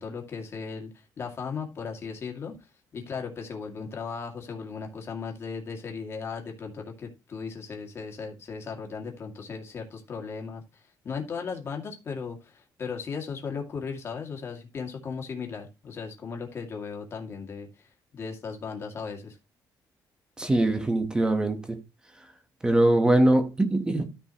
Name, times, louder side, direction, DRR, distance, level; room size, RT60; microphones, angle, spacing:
voice 1, 0.0-2.5 2.9-19.4, left 5 dB, 35° left, 2.2 m, -37 dB
voice 2, 20.4-21.8 22.6-24.0, right 1 dB, 10° right, 1.1 m, -22 dB
13.5 x 5.4 x 2.9 m
cardioid pair, 175°, 8 cm